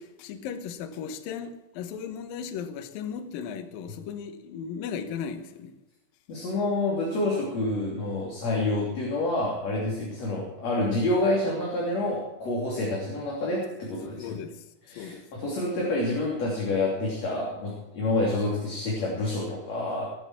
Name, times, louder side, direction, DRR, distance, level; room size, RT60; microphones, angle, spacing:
voice 1, 0.0-5.7 14.2-14.6 15.0-15.3, left 7 dB, 70° left, 2.3 m, -36 dB
voice 2, 6.3-14.4 14.8-20.1, left 2 dB, 40° left, 3.8 m, -28 dB
20.0 x 8.0 x 7.5 m
omnidirectional pair, 5.4 m